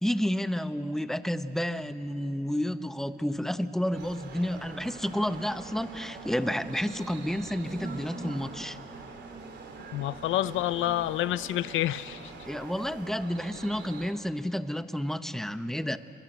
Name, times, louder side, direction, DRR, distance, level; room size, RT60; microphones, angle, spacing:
voice 1, 0.0-8.8 12.5-16.0, equal, ahead, 11 dB, 1.0 m, -30 dB
sound 1, 3.9-14.1, right 4 dB, 60° right, 3.3 m, -45 dB
Buzz, 4.7-12.9, right 2 dB, 45° right, 6.0 m, -47 dB
voice 2, 9.9-12.3, left 14 dB, 85° left, 16 dB, 0.7 m, -28 dB
28.5 x 23.0 x 8.1 m, 2.8 s
cardioid pair, 90°, 20 cm